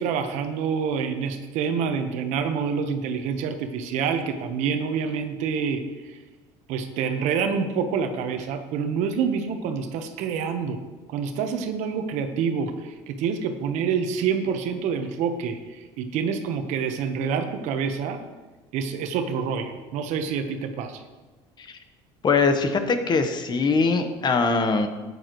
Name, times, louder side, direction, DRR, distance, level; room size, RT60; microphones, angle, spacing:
voice 1, 0.0-6.2 6.7-18.2 18.7-21.0, right 6 dB, 70° right, 7 dB, 1.1 m, -27 dB
voice 2, 22.2-24.9, left 4 dB, 35° left, 7 dB, 1.1 m, -22 dB
13.0 x 9.6 x 3.1 m, 1.2 s
supercardioid pair, 105°, 13 cm